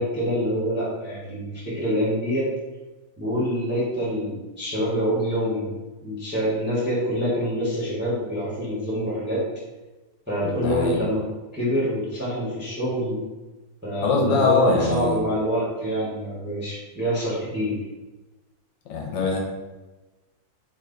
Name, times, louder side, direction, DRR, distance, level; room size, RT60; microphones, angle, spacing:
voice 1, 0.0-2.5 3.2-5.7 6.0-9.4 10.3-11.2 11.5-13.2 13.8-17.8, equal, 10° right, -8 dB, 0.6 m, -26 dB
voice 2, 10.4-11.0 14.0-15.2 18.9-19.4, left 3 dB, 85° left, 0 dB, 1.3 m, -22 dB
3.1 x 2.2 x 3.8 m, 1.1 s
omnidirectional pair, 1.9 m